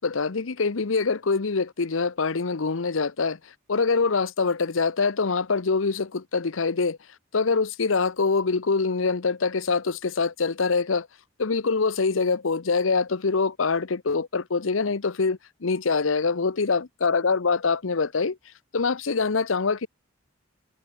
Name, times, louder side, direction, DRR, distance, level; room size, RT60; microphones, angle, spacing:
voice 1, 0.0-7.0 7.3-11.1 11.4-18.4 18.7-19.9, left 4 dB, 85° left, 0.8 m, -24 dB
head